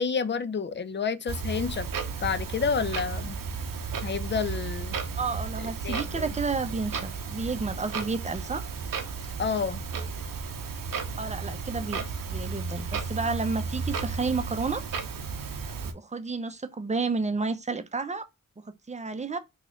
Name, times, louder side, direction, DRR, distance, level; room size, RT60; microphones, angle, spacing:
voice 1, 0.0-1.9 2.2-3.4 4.0-5.0 5.6-6.3 9.4-9.8, left 5 dB, 35° left, 0.5 m, -29 dB
Clock, 1.3-15.9, right 5 dB, 70° right, 0.7 m, -34 dB
voice 2, 5.2-8.6 11.2-12.0 12.3-14.8 15.9-18.3 18.7-19.4, right 4 dB, 20° right, 0.6 m, -31 dB
3.1 x 2.4 x 3.7 m
cardioid pair, 45°, 34 cm